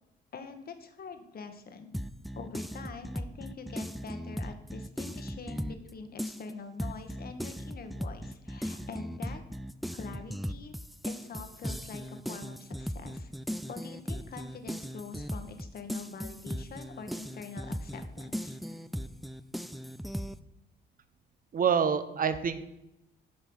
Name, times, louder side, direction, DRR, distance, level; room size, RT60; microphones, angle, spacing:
voice 1, 0.3-1.9 2.4-9.4 9.9-10.7 11.0-13.3 13.7-18.6, left 5 dB, 50° left, 7 dB, 1.3 m, -45 dB
sound 1, 1.9-5.9 6.2-20.4, equal, ahead, 0.4 m, -38 dB
voice 2, 21.5-22.6, right 7 dB, 45° right, 11 dB, 0.9 m, -26 dB
8.7 x 5.6 x 6.2 m, 0.89 s
cardioid pair, 90°, 20 cm